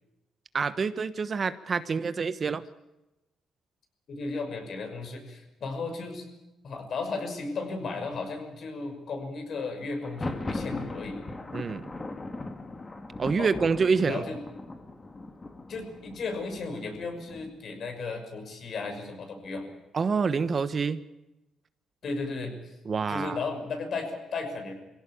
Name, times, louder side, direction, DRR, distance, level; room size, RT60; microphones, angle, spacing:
voice 1, 0.5-2.6 11.5-11.9 13.2-14.2 19.9-21.0 22.8-23.4, right 5 dB, 40° right, 13 dB, 1.2 m, -27 dB
voice 2, 4.1-6.3 6.6-11.2 13.4-13.5 14.0-14.4 15.7-19.7 22.0-22.6 23.1-24.7, left 3 dB, 60° left, 5 dB, 6.0 m, -35 dB
Thunder, 9.9-17.7, left 2 dB, 25° left, 2.4 m, -39 dB
23.0 x 16.5 x 8.6 m, 0.97 s
cardioid pair, 90°, 0 cm